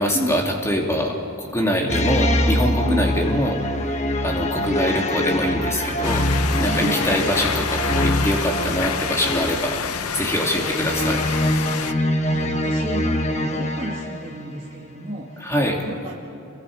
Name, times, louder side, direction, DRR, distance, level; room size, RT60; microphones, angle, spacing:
voice 1, 0.0-6.2 6.6-11.2 15.4-15.8, equal, 15° left, 0 dB, 2.7 m, -24 dB
sound 1, 1.9-14.4, left 1 dB, 30° left, 1.2 m, -24 dB
sound 2, 6.0-11.9, left 7 dB, 90° left, 0.8 m, -28 dB
voice 2, 6.6-7.1 11.7-16.2, equal, 30° right, -5 dB, 2.2 m, -32 dB
29.0 x 23.5 x 5.1 m, 2.7 s
head